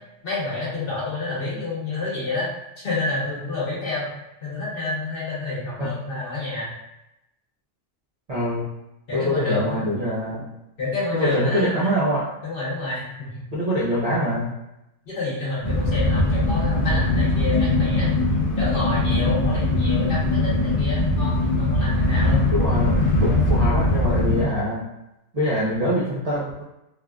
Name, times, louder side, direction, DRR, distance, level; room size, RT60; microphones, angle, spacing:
voice 1, 0.2-2.5 2.8-4.1 4.4-6.7 9.1-9.9 10.8-11.9 12.4-13.4 15.0-18.1 18.6-22.5 23.2-23.6 25.7-25.9, left 2 dB, 45° left, -7 dB, 1.1 m, -29 dB
voice 2, 8.3-8.7 9.1-10.5 11.1-12.3 13.5-14.5 22.5-24.8 25.3-26.6, equal, 55° right, -6 dB, 0.4 m, -24 dB
sound 1, 15.6-24.4, left 2 dB, 30° left, 0.6 m, -21 dB
3.4 x 2.4 x 2.3 m, 0.89 s
omnidirectional pair, 1.4 m